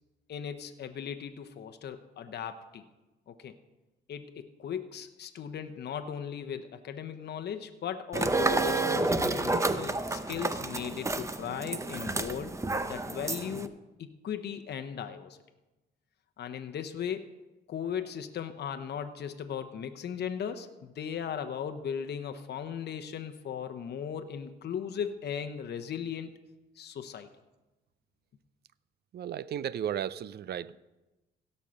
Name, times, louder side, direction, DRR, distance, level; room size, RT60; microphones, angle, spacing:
voice 1, 0.3-2.8 3.3-3.5 4.1-12.6 12.9-13.7 14.0-15.4 16.4-17.3 17.7-26.3 26.8-27.3, left 8 dB, 55° left, 7 dB, 0.8 m, -37 dB
sound 1, 8.1-13.7, right 2 dB, 15° right, 0.7 m, -30 dB
voice 2, 29.1-30.8, right 10 dB, 55° right, 18 dB, 0.5 m, -34 dB
16.5 x 5.5 x 6.3 m, 1.1 s
cardioid pair, 90°, 20 cm